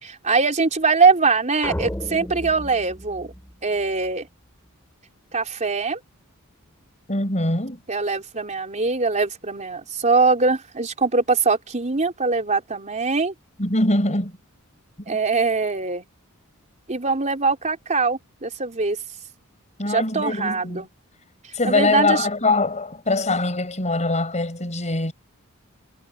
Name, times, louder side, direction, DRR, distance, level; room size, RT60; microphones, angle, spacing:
voice 1, 0.0-3.3 3.6-4.3 5.3-6.0 7.9-13.3 15.1-16.1 16.9-19.0 19.9-20.9 21.6-22.3, right 4 dB, 35° right, 3.7 m, -22 dB
sound 1, 1.6-4.1, equal, 10° left, 4.8 m, -33 dB
voice 2, 7.1-7.8 13.6-14.4 15.1-15.2 19.8-20.8 21.5-25.1, left 2 dB, 30° left, 6.5 m, -23 dB
head